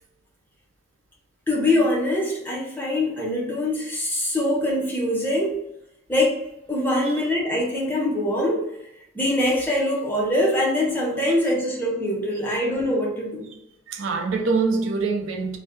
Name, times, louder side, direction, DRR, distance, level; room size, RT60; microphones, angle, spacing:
voice 1, 1.5-5.6 6.1-6.4 6.7-8.6 9.1-13.5, left 1 dB, 10° left, 0.6 m, -23 dB
voice 2, 13.9-15.6, right 4 dB, 90° right, 0.5 m, -24 dB
2.6 x 2.1 x 3.6 m
head